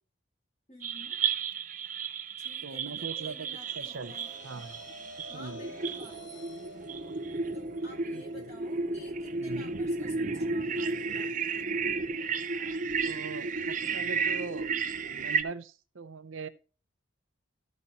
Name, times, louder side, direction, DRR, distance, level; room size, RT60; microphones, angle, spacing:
voice 1, 0.7-1.2 2.4-4.3 4.6-6.5 7.5-11.9, left 1 dB, 30° left, -1 dB, 4.3 m, -53 dB
sound 1, 0.8-15.4, right 4 dB, 40° right, 0.6 m, -33 dB
voice 2, 2.6-3.5 3.8-4.2 4.4-4.8 5.3-5.7 8.1-8.2 9.4-9.7 13.0-14.7 15.1-16.5, right 4 dB, 75° right, 12 dB, 0.7 m, -41 dB
sound 2, 3.2-15.5, right 2 dB, 65° left, 2.5 m, -52 dB
13.0 x 5.3 x 4.2 m, 0.36 s
head